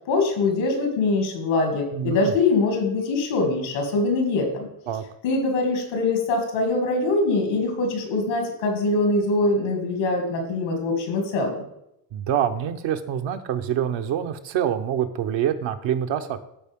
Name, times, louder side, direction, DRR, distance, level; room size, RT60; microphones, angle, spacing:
voice 1, 0.1-4.7 5.2-11.7, left 3 dB, 90° left, 3 dB, 2.6 m, -23 dB
voice 2, 1.9-2.3 4.9-5.0 12.1-16.4, right 9 dB, 65° right, 7 dB, 1.0 m, -26 dB
13.0 x 4.4 x 3.7 m, 0.80 s
supercardioid pair, 85°, 48 cm